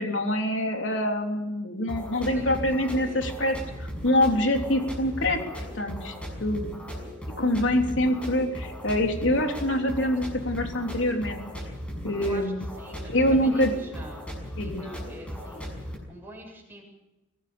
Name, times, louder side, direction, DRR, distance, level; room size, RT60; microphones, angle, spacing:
voice 1, 0.0-6.1 6.4-6.6 7.4-11.4 12.0-12.7 13.1-13.7 14.6-14.8, left 1 dB, 75° left, 3 dB, 3.5 m, -25 dB
sound 1, 1.9-16.0, equal, 5° left, 6.1 m, -37 dB
voice 2, 12.2-12.5 12.8-14.3 14.5-16.8, right 1 dB, 10° right, 0 dB, 7.6 m, -45 dB
24.5 x 16.5 x 7.0 m, 1.0 s
head